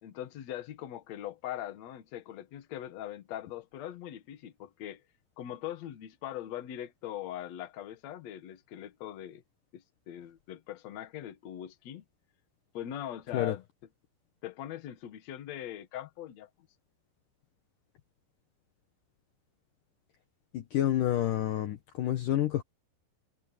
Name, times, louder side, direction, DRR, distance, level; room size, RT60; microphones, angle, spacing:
voice 1, 0.0-5.0 5.4-9.4 9.7-12.0 12.7-13.6 14.4-16.5, left 11 dB, 60° left, 1.8 m, -41 dB
voice 2, 20.5-22.6, left 12 dB, 75° left, 1.9 m, -29 dB
omnidirectional pair, 5.5 m